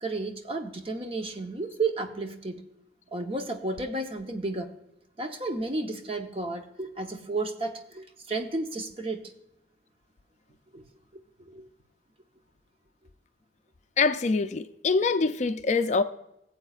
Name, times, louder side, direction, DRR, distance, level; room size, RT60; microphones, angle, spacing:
voice 1, 0.0-2.6 3.1-4.7 5.2-9.2 10.7-10.8 11.5-11.7, right 2 dB, 30° right, 0.9 m, -32 dB
voice 2, 14.0-16.0, left 4 dB, 40° left, 0.4 m, -24 dB
17.5 x 7.9 x 2.4 m
head